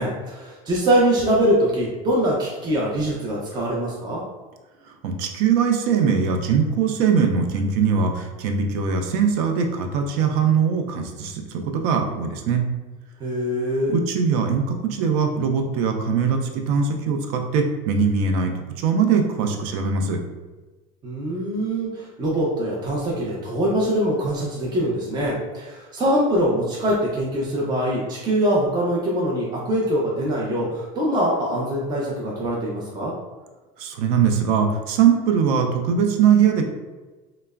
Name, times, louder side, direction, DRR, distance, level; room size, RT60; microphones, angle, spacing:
voice 1, 0.0-4.2 13.2-14.0 21.0-33.1, equal, 20° right, -4 dB, 0.5 m, -23 dB
voice 2, 5.0-12.6 13.9-18.5 18.8-20.2 33.8-36.7, right 6 dB, 80° right, 4 dB, 0.5 m, -21 dB
3.2 x 2.0 x 2.3 m, 1.2 s
supercardioid pair, 120°, 19 cm